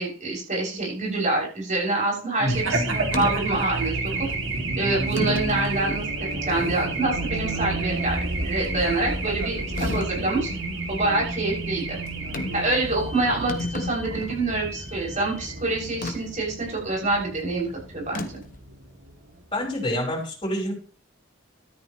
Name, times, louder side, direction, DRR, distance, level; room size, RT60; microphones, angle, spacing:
voice 1, 0.0-4.0 4.8-10.5 10.9-12.0 12.5-17.7 17.9-18.4, right 2 dB, 40° right, -3 dB, 7.4 m, -26 dB
voice 2, 2.4-3.0 19.5-20.7, left 1 dB, 25° left, -2 dB, 5.9 m, -27 dB
Race car auto racing / Alarm, 2.5-19.4, right 2 dB, 75° right, 2.9 m, -30 dB
sound 1, 3.1-3.4 4.3-4.4 5.2-5.7 6.3-6.4 9.8-10.2 12.3-12.7 13.0-13.1 13.3-14.4 16.0-16.2 18.1-18.5, left 2 dB, 40° left, 1.4 m, -31 dB
14.0 x 13.0 x 3.3 m, 0.41 s
head